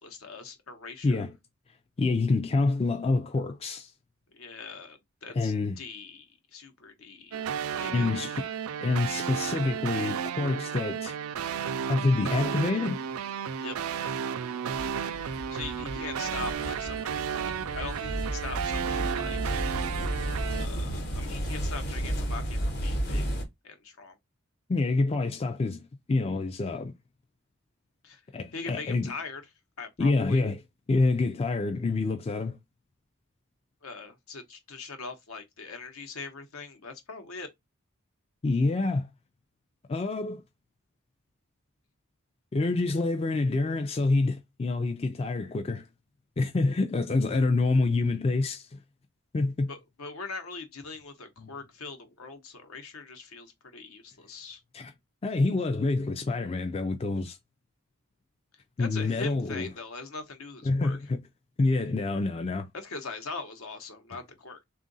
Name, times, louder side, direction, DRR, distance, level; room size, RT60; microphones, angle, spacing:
voice 1, 0.0-1.2 4.3-6.3 6.5-7.5 7.8-8.5 13.6-13.8 15.5-19.6 20.6-23.3 23.6-24.2 28.0-28.2 28.5-29.4 29.8-30.4 33.8-37.5 49.7-54.6 58.8-61.0 62.7-64.6, left 4 dB, 70° left, 1.0 m, -41 dB
voice 2, 1.0-1.3 2.0-3.9 5.4-5.8 7.9-8.3 8.8-11.1 11.9-13.0 24.7-26.9 28.3-29.1 30.0-30.6 30.9-32.6 38.4-39.1 39.9-40.4 42.5-45.9 46.4-48.8 49.3-49.7 51.4-51.5 54.7-54.9 55.2-57.4 58.8-59.7 60.6-61.2 61.6-62.7, left 3 dB, 25° left, 0.4 m, -27 dB
sound 1, 7.3-20.7, right 7 dB, 75° right, 0.4 m, -33 dB
sound 2, 14.7-23.4, right 1 dB, 50° left, 1.0 m, -33 dB
3.6 x 2.5 x 3.9 m
head